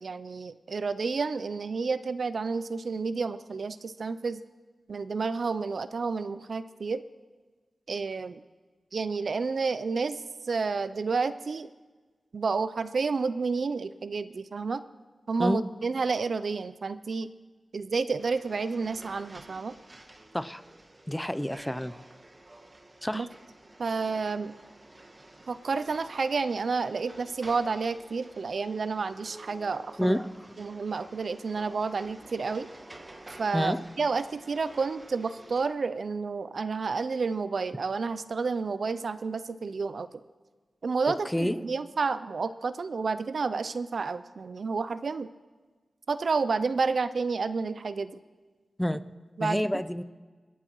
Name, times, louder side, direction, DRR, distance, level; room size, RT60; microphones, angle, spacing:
voice 1, 0.0-4.4 4.9-7.0 7.9-8.4 8.9-11.7 12.3-14.8 15.3-17.3 17.7-19.7 23.1-23.3 23.8-24.5 25.5-30.2 30.6-32.7 33.4-40.1 40.8-45.3 46.1-48.2 49.4-49.6, right 4 dB, 70° right, 13 dB, 0.4 m, -30 dB
sound 1, 18.2-35.7, right 2 dB, 35° right, 1.1 m, -51 dB
voice 2, 21.1-21.9 23.0-23.3 30.0-30.3 33.5-33.8 41.3-41.7 48.8-49.0 49.4-50.0, equal, 10° left, 14 dB, 0.5 m, -28 dB
24.0 x 8.4 x 3.0 m, 1.4 s
cardioid pair, 60°, 0 cm